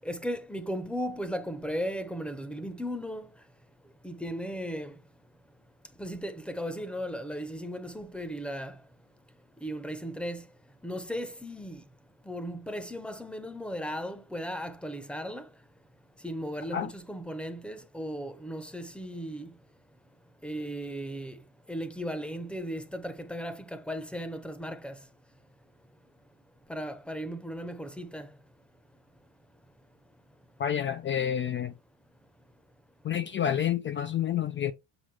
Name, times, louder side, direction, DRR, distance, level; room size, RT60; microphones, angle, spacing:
voice 1, 0.0-3.3 4.0-4.9 6.0-8.7 9.6-10.4 10.8-11.8 12.3-15.5 16.2-19.5 20.4-21.4 21.7-25.0 26.7-28.3, equal, 5° left, 0.9 m, -36 dB
voice 2, 30.6-31.7 33.0-34.7, left 9 dB, 30° left, 0.5 m, -29 dB
7.8 x 4.9 x 3.3 m
cardioid pair, 150°, 41 cm